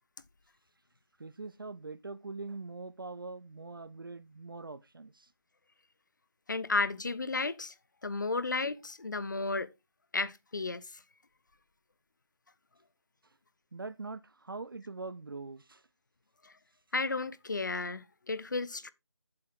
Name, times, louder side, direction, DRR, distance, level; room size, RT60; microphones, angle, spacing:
voice 1, 1.2-5.3 13.7-15.8, right 3 dB, 55° right, 0.5 m, -43 dB
voice 2, 6.5-7.7 8.0-9.7 10.1-10.9 16.9-18.9, left 3 dB, 45° left, 0.6 m, -33 dB
8.4 x 7.8 x 3.5 m
figure-of-eight pair, 165°, 14 cm